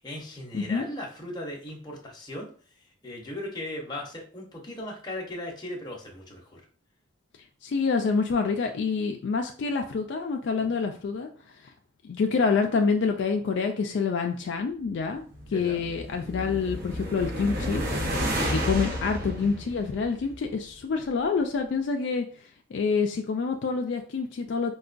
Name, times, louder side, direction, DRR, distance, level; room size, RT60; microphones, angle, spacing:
voice 1, 0.0-2.5 3.0-6.6 10.6-10.8 15.5-15.8, left 1 dB, 20° left, -1 dB, 0.8 m, -38 dB
voice 2, 0.5-0.9 7.6-11.3 12.0-17.8 18.5-22.3 22.7-24.7, left 5 dB, 60° left, 4 dB, 0.3 m, -27 dB
sound 1, 15.2-20.6, equal, 50° right, 0.8 m, -31 dB
4.6 x 2.2 x 2.5 m, 0.43 s
head